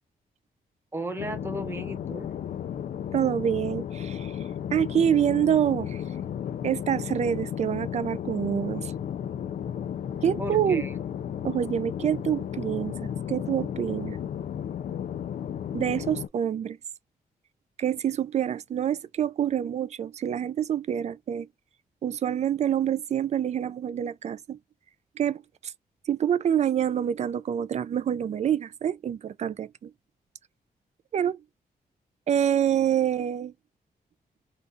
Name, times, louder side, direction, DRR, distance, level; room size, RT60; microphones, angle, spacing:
voice 1, 0.9-2.3 10.4-11.0, right 1 dB, 15° right, 0.9 m, -35 dB
sound 1, 1.2-16.3, left 9 dB, 55° left, 0.4 m, -34 dB
voice 2, 3.1-4.4 4.7-6.0 6.6-8.9 10.2-10.8 11.4-14.2 15.7-16.8 17.8-21.5 22.0-24.6 25.2-25.7 26.1-29.9 31.1-31.4 32.3-33.5, right 9 dB, 45° right, 0.4 m, -26 dB
3.8 x 2.3 x 2.6 m
wide cardioid pair, 145°, 16 cm